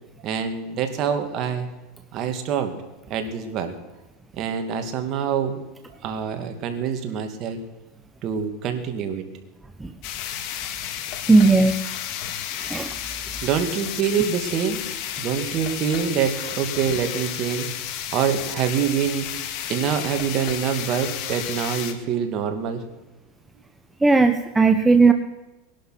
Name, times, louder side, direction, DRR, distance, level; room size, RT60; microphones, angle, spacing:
voice 1, 0.2-1.7 2.1-2.8 3.1-3.7 4.3-5.6 6.0-7.6 8.2-9.2 13.4-14.8 15.2-17.7 18.1-19.3 19.7-22.8, right 8 dB, 40° right, 6 dB, 2.3 m, -25 dB
sound 1, 10.0-21.9, left 10 dB, 50° left, 1.7 m, -32 dB
voice 2, 11.3-11.8 12.7-12.9 24.0-25.1, right 3 dB, 10° right, 7 dB, 0.8 m, -16 dB
19.5 x 11.5 x 5.9 m, 1.1 s
supercardioid pair, 140°, 0 cm